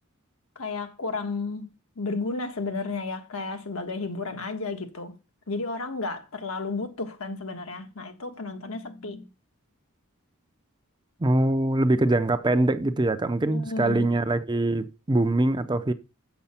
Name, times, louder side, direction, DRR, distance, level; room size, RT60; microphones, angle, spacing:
voice 1, 0.5-5.2 5.5-9.3 13.5-14.1, left 3 dB, 75° left, 1.5 m, -33 dB
voice 2, 11.2-15.9, right 2 dB, 20° right, 0.6 m, -23 dB
7.6 x 6.9 x 5.8 m
head